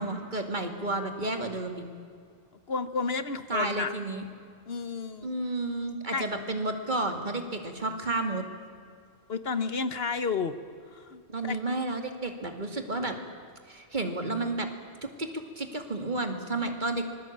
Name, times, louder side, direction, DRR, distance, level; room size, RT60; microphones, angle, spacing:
voice 1, 0.0-1.8 3.5-4.2 5.2-8.4 11.3-13.2 13.7-14.7 15.0-15.3 15.6-17.0, right 2 dB, 45° right, 5 dB, 2.5 m, -31 dB
voice 2, 2.7-3.9 4.7-5.3 6.1-6.3 9.3-10.5 10.9-11.6, left 4 dB, 60° left, 12 dB, 1.3 m, -31 dB
26.0 x 21.0 x 8.7 m, 2.3 s
omnidirectional pair, 1.1 m